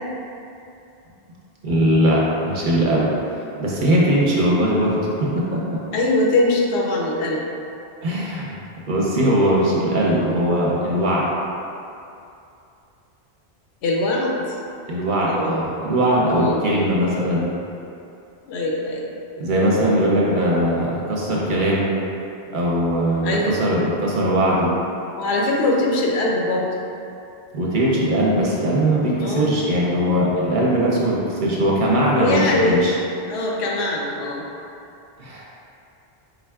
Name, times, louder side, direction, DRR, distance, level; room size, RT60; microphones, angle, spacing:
voice 1, 1.6-3.1 3.6-5.6 8.0-8.5 8.9-11.3 14.9-17.5 19.4-21.9 22.5-24.7 27.5-32.9 35.2-35.4, right 1 dB, 55° right, -4 dB, 0.7 m, -20 dB
voice 2, 5.9-7.4 13.8-14.6 15.2-15.6 16.3-16.7 18.5-19.0 23.2-23.6 25.2-26.8 29.2-29.5 32.2-32.8 33.3-34.4, left 2 dB, 85° left, -2 dB, 0.9 m, -22 dB
3.9 x 3.5 x 2.2 m, 2.6 s
omnidirectional pair, 1.1 m